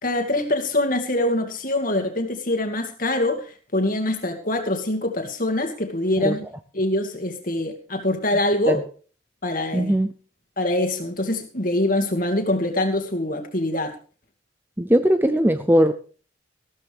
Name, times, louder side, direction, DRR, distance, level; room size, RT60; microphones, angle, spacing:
voice 1, 0.0-6.4 6.7-8.8 9.4-10.0 10.6-13.9, left 1 dB, 45° left, 2.3 m, -24 dB
voice 2, 9.7-10.1 14.8-15.9, equal, 10° right, 0.5 m, -19 dB
14.5 x 13.0 x 3.5 m
head